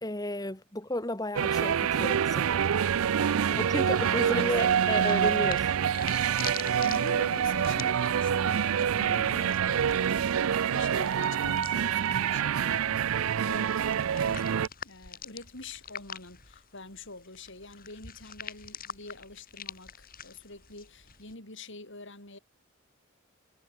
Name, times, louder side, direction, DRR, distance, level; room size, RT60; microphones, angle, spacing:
voice 1, 0.0-2.7 3.6-5.7, left 1 dB, 20° left, 3.5 m, -33 dB
sound 1, 1.4-14.7, right 8 dB, 75° right, 0.4 m, -26 dB
voice 2, 2.9-4.5 6.5-13.8 14.2-22.4, left 3 dB, 60° left, 6.3 m, -46 dB
sound 2, 4.2-21.4, left 8 dB, 40° left, 7.9 m, -46 dB
head